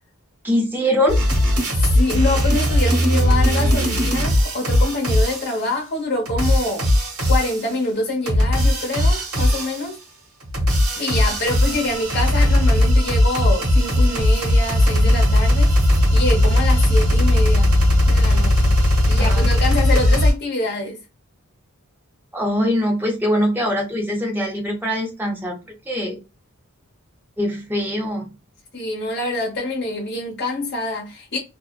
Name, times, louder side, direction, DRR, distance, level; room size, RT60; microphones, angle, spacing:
voice 1, 0.4-1.2 11.0-11.3 18.3-18.4 19.2-19.5 22.3-25.6 25.9-26.2 27.4-28.3, equal, 10° right, 0.5 m, -22 dB
sound 1, 1.1-5.6 6.3-7.7 8.3-9.9 10.4-20.3, left 1 dB, 80° right, 1.1 m, -18 dB
voice 2, 1.9-6.9 7.3-10.0 10.9-15.7 16.1-17.7 18.1-18.7 19.1-21.0 28.7-31.4, left 2 dB, 50° left, 1.0 m, -25 dB
sound 2, 11.2-17.0, equal, 40° right, 0.8 m, -36 dB
2.5 x 2.1 x 2.3 m
head